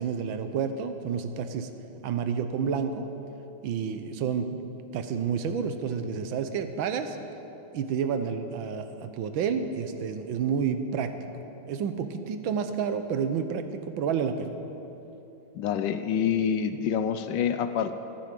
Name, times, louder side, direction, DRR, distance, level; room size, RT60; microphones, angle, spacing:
voice 1, 0.0-1.7 2.0-3.1 3.6-4.6 4.9-7.2 7.7-11.1 11.6-14.5, right 6 dB, 80° right, 9 dB, 1.6 m, -29 dB
voice 2, 15.5-17.9, left 8 dB, 75° left, 10 dB, 1.2 m, -27 dB
14.0 x 9.9 x 7.5 m, 3.0 s
omnidirectional pair, 2.2 m